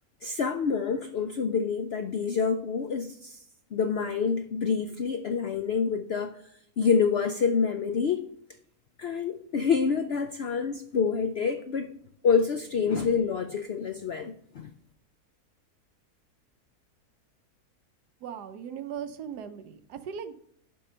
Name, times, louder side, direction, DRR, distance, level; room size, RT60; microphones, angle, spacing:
voice 1, 0.2-3.4 3.7-6.4 6.8-8.3 9.0-11.9 12.2-14.7, left 5 dB, 70° left, 0.5 m, -27 dB
voice 2, 18.2-20.3, right 8 dB, 80° right, 1.3 m, -38 dB
11.0 x 3.8 x 5.5 m
omnidirectional pair, 1.7 m